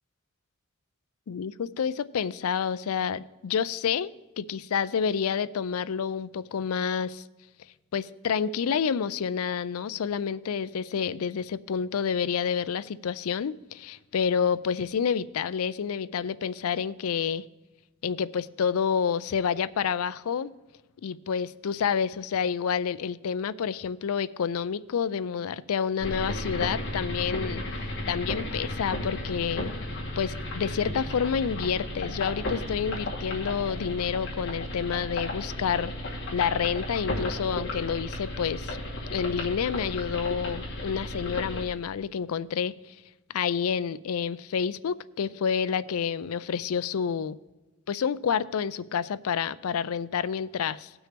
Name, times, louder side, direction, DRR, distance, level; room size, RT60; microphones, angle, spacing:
voice 1, 1.3-4.1 4.4-7.2 7.9-17.5 18.0-20.5 21.0-29.7 30.2-35.9 36.3-38.8 39.1-43.0 43.3-47.4 47.9-50.9, left 7 dB, 85° left, 0.4 m, -29 dB
sound 1, 26.0-41.6, left 1 dB, 55° left, 2.3 m, -34 dB
18.0 x 6.2 x 3.4 m
head